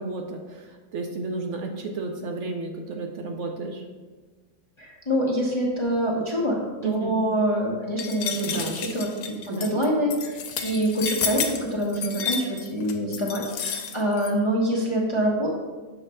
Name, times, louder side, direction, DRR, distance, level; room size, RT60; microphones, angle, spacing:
voice 1, 0.0-3.8 6.8-7.2 8.4-8.8 9.5-9.8, right 3 dB, 65° right, 3 dB, 0.8 m, -32 dB
voice 2, 4.8-8.6 8.9-15.5, right 1 dB, 30° left, -3 dB, 0.6 m, -25 dB
sound 1, 8.0-14.3, left 6 dB, 80° left, 1.1 m, -31 dB
7.0 x 3.2 x 5.4 m, 1.4 s
omnidirectional pair, 1.5 m